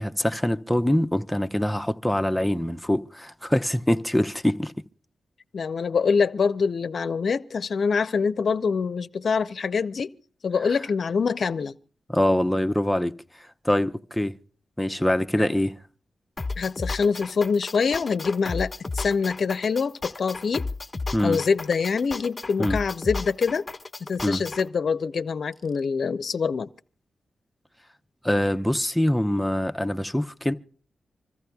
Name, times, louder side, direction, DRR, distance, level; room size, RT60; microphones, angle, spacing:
voice 1, 0.0-4.7 12.1-13.1 13.6-14.3 14.8-15.7 21.1-21.4 22.6-22.8 24.2-24.4 28.2-30.6, left 1 dB, 5° left, 0.7 m, -24 dB
voice 2, 5.5-10.1 10.4-11.7 15.4-15.5 16.6-20.7 21.2-23.6 24.1-26.7, left 5 dB, 70° left, 0.6 m, -25 dB
sound 1, 16.4-24.6, left 3 dB, 40° left, 1.4 m, -33 dB
26.0 x 14.0 x 2.3 m
cardioid pair, 60°, 0 cm